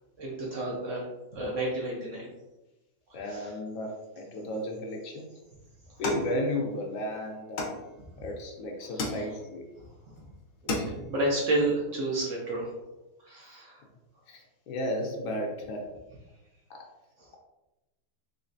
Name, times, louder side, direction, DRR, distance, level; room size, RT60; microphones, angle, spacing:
voice 1, 0.2-1.0 1.3-2.3 3.1-3.5 8.2-8.3 8.9-9.1 10.6-12.7 13.3-13.8 17.2-17.3, right 1 dB, 75° right, -3 dB, 0.7 m, -31 dB
voice 2, 3.1-5.3 6.0-7.7 8.2-9.7 14.3-14.4 14.7-15.9 16.7-16.9, left 1 dB, 80° left, 0 dB, 1.4 m, -33 dB
sound 1, 6.0-7.0 7.6-8.3 9.0-9.7 10.2-10.3 10.5-11.2, left 2 dB, 65° left, 0.8 m, -34 dB
4.2 x 3.1 x 2.5 m, 1.0 s
omnidirectional pair, 2.1 m